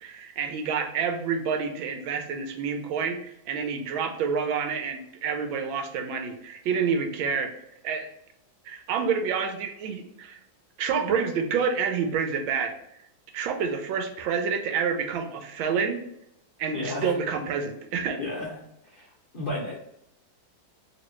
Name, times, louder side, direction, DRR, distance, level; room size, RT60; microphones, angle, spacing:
voice 1, 0.0-7.5 7.8-8.1 8.6-10.4 10.8-12.7 13.3-16.0 16.6-18.2, right 6 dB, 90° right, 5 dB, 1.4 m, -28 dB
voice 2, 16.7-17.1 18.2-18.6 18.8-19.8, left 2 dB, 65° left, -5 dB, 0.5 m, -33 dB
3.1 x 2.9 x 3.1 m, 0.79 s
omnidirectional pair, 2.1 m